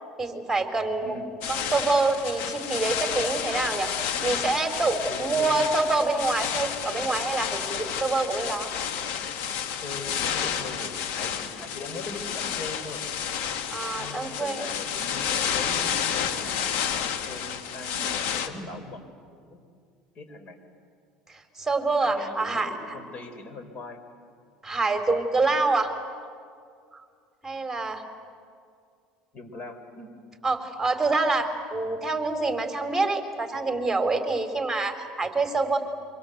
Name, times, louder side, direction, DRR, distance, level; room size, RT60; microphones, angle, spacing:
voice 1, 0.2-1.1 1.5-8.7 13.7-14.6 21.3-22.7 24.6-25.9 27.4-28.0 30.4-35.8, right 3 dB, 10° right, 5 dB, 4.1 m, -26 dB
sound 1, 1.4-18.5, left 8 dB, 70° left, 1.9 m, -30 dB
voice 2, 5.1-5.6 9.8-13.0 13.9-19.0 19.3-19.6 20.1-20.6 22.0-24.0 29.3-30.1, left 2 dB, 45° left, 9 dB, 4.6 m, -40 dB
26.5 x 25.0 x 8.1 m, 2.3 s
hypercardioid pair, 85°, 3 cm